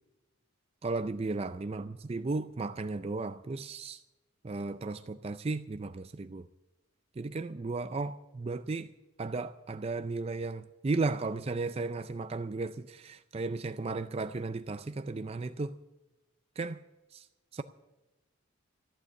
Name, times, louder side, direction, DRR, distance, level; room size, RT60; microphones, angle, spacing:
voice 1, 0.8-4.0 4.4-6.5 7.2-8.9 9.2-15.8 16.6-16.8 17.1-17.3 17.5-17.6, right 3 dB, 30° right, 0.4 m, -35 dB
14.0 x 9.1 x 8.2 m
head